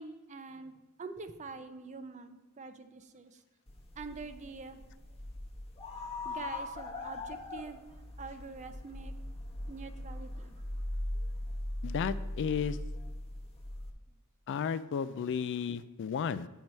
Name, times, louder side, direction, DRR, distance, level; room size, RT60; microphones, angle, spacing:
voice 1, 0.0-3.4 4.0-4.8 6.2-7.8 8.2-9.1 9.7-10.6, right 4 dB, 35° right, 9 dB, 0.5 m, -45 dB
sound 1, 3.7-13.9, left 1 dB, 25° left, 1.0 m, -40 dB
voice 2, 11.8-12.8 14.5-16.5, left 7 dB, 55° left, 14 dB, 0.3 m, -33 dB
8.9 x 4.6 x 5.4 m, 1.1 s
head